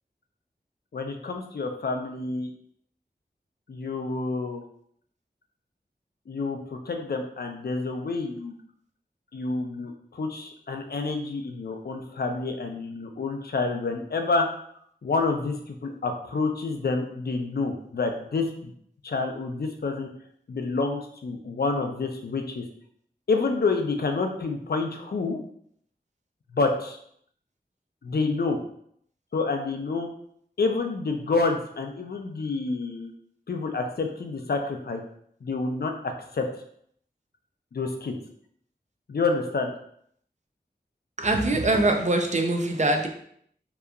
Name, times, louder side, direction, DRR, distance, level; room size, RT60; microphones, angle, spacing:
voice 1, 0.9-2.5 3.7-4.6 6.3-8.5 9.3-14.5 15.0-18.7 19.0-20.1 20.5-22.6 23.3-25.4 26.5-27.0 28.0-28.6 29.3-30.1 30.6-33.1 33.5-35.0 35.4-36.5 37.7-38.1 39.1-39.7, left 3 dB, 65° left, 4 dB, 0.4 m, -28 dB
voice 2, 41.2-43.1, right 2 dB, 40° right, 4 dB, 0.4 m, -23 dB
2.8 x 2.3 x 2.3 m, 0.66 s
wide cardioid pair, 60°, 18 cm